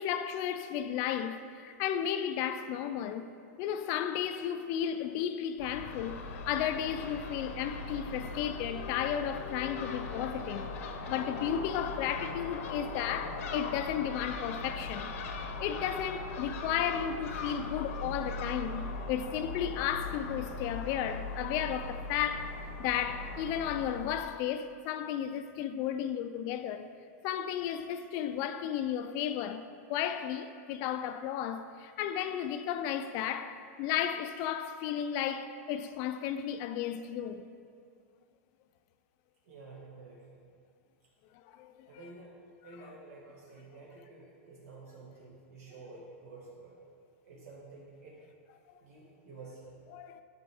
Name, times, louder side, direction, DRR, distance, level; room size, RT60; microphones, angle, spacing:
voice 1, 0.0-3.3 3.6-6.2 6.5-10.7 11.1-15.1 15.4-26.9 27.2-29.6 29.9-37.5 41.3-41.9 48.7-48.8 49.9-50.2, left 9 dB, 40° left, 0.3 m, -34 dB
Crow / Gull seagull, 5.6-24.2, left 3 dB, 65° left, 0.7 m, -40 dB
voice 2, 39.4-40.4 41.9-46.7 47.2-48.2 48.8-49.8, right 3 dB, 80° right, 1.7 m, -50 dB
9.5 x 5.2 x 3.5 m
supercardioid pair, 150°, 8 cm